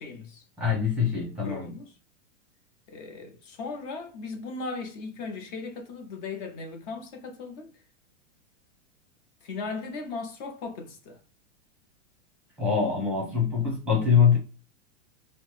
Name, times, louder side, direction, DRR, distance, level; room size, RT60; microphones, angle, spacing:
voice 1, 0.0-0.4 1.4-1.9 2.9-7.7 9.4-11.2, left 4 dB, 35° left, 0.7 m, -37 dB
voice 2, 0.6-1.7 12.6-14.4, left 6 dB, 5° right, 0.9 m, -23 dB
2.9 x 2.0 x 3.1 m
supercardioid pair, 155°, 36 cm